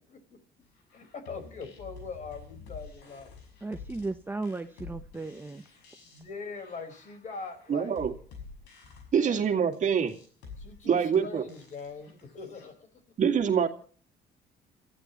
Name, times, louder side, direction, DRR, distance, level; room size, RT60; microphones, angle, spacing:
sound 1, 0.7-12.7, left 5 dB, 90° left, 6.1 m, -49 dB
voice 1, 0.9-3.3 6.0-8.0 9.2-9.4 10.6-12.9, left 4 dB, 45° left, 7 dB, 5.0 m, -42 dB
voice 2, 3.6-5.6, right 3 dB, 10° right, 7 dB, 1.0 m, -35 dB
voice 3, 7.7-8.1 9.1-10.2 10.9-11.4 13.2-13.7, right 7 dB, 45° right, 5 dB, 2.2 m, -25 dB
29.0 x 14.5 x 3.1 m, 0.42 s
cardioid pair, 110°, 17 cm